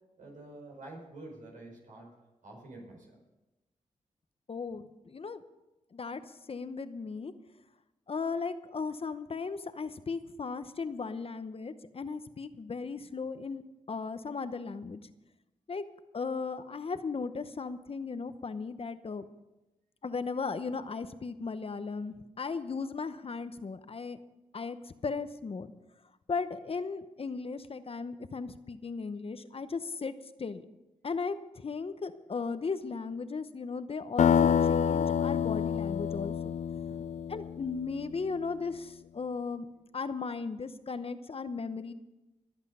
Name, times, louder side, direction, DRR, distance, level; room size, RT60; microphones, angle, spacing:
voice 1, 0.2-2.1 2.4-3.2 36.8-37.1, right 2 dB, 80° right, 0 dB, 5.3 m, -48 dB
voice 2, 4.5-5.4 5.9-6.2 6.5-7.3 8.1-13.6 13.9-15.0 15.7-15.8 16.1-19.2 20.0-24.2 24.5-25.7 26.3-30.1 30.4-30.6 31.0-36.3 37.3-39.7 39.9-41.9, left 4 dB, 45° left, 11 dB, 0.8 m, -36 dB
sound 1, 34.2-38.0, left 8 dB, 60° left, 0.4 m, -27 dB
22.0 x 8.1 x 5.5 m, 1.0 s
cardioid pair, 70°, 13 cm